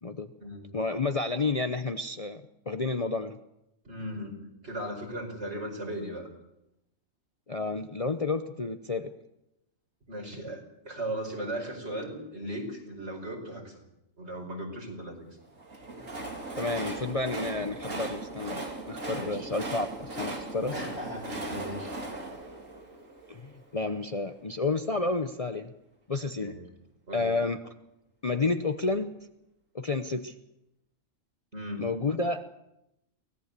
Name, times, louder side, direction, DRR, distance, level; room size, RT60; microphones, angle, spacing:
voice 1, 0.7-3.4 7.5-9.1 16.6-20.7 23.3-25.7 26.1-26.5 27.1-27.7 28.2-29.1 29.7-30.3 31.8-32.5, left 3 dB, 30° left, 7 dB, 0.8 m, -30 dB
voice 2, 3.8-4.4 4.6-6.3 10.1-13.8 14.2-15.3 19.1-19.5 20.7-22.0 26.3-26.6 27.1-27.3 31.5-31.8, right 1 dB, 55° right, 2 dB, 5.5 m, -37 dB
Train, 15.5-23.7, right 2 dB, 75° right, 3.6 m, -38 dB
23.5 x 18.0 x 6.8 m, 0.86 s
omnidirectional pair, 1.4 m